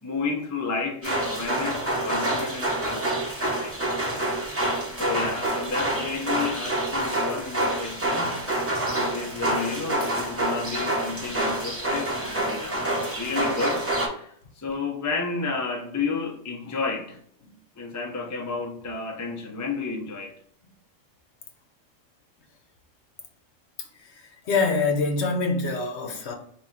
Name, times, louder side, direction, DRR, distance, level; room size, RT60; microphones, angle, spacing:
voice 1, 0.0-4.7 5.0-8.4 8.9-13.9 14.1-17.2 17.7-20.3, left 4 dB, 25° left, 0.4 m, -32 dB
sound 1, 1.0-14.1, right 1 dB, 15° right, 0.7 m, -27 dB
voice 2, 23.8-26.3, left 4 dB, 65° left, 1.0 m, -26 dB
4.2 x 2.6 x 3.6 m
omnidirectional pair, 1.3 m